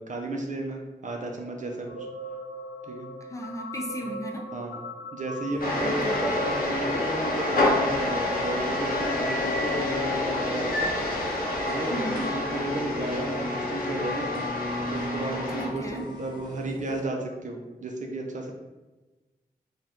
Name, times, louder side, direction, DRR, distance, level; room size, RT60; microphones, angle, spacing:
voice 1, 0.0-2.1 2.8-3.1 4.0-4.2 4.5-4.8 5.1-10.9 11.7-14.5 14.9-18.5, right 2 dB, 45° right, 1 dB, 0.6 m, -33 dB
sound 1, 1.3-13.2 13.8-16.4, left 1 dB, 85° left, 0.5 m, -42 dB
voice 2, 3.3-4.5 5.8-6.2 11.9-12.3 15.6-16.1, equal, 20° left, 1 dB, 0.6 m, -36 dB
sound 2, 5.5-17.0, equal, 25° right, 1.0 m, -44 dB
sound 3, 5.6-15.7, left 2 dB, 55° left, 0.8 m, -28 dB
2.6 x 2.3 x 3.5 m, 1.2 s
supercardioid pair, 40°, 17 cm